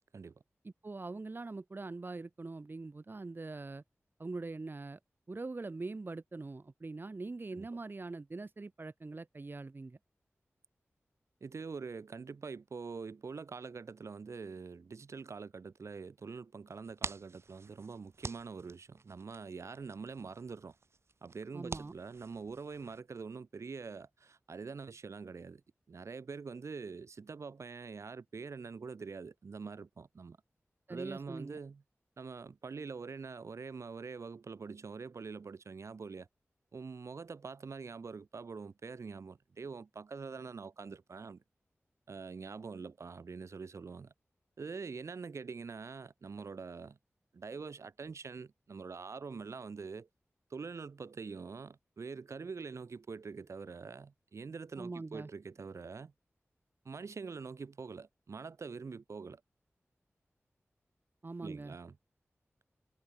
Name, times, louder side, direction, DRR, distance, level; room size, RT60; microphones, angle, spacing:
voice 1, 0.6-3.8 4.2-5.0 5.3-10.0 21.5-21.9 30.9-31.6 54.8-55.3 61.2-61.8, right 3 dB, 45° right, 1.7 m, -43 dB
voice 2, 11.4-20.7 21.2-25.6 25.9-30.4 30.9-31.8 32.2-36.3 36.7-41.4 42.1-44.1 44.6-47.0 47.3-50.1 50.5-56.1 56.9-59.4 61.4-62.0, right 5 dB, 80° right, 2.3 m, -45 dB
sound 1, 16.7-23.0, right 4 dB, 65° right, 2.5 m, -48 dB
wide cardioid pair, 65°, 5 cm